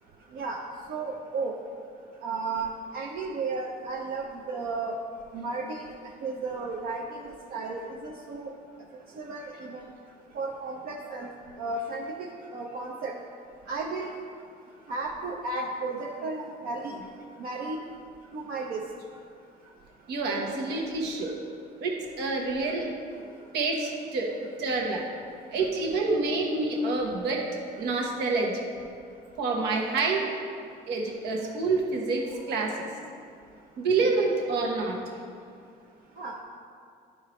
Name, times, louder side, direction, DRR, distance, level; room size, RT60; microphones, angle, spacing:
voice 1, 0.3-0.6 0.9-1.6 2.2-2.7 2.9-4.9 5.3-5.9 6.2-8.5 9.2-9.8 10.3-11.3 11.6-13.1 13.7-14.1 14.9-16.9 17.4-17.8 18.3-18.8 36.2-36.4, right 3 dB, 65° right, -1 dB, 0.7 m, -33 dB
voice 2, 20.1-21.3 21.8-22.9 23.5-25.1 25.5-27.5 27.8-28.6 29.4-30.3 30.9-32.9 33.8-35.0, right 3 dB, 80° right, -1 dB, 1.2 m, -27 dB
12.0 x 4.6 x 3.2 m, 2.3 s
cardioid pair, 110°, 17 cm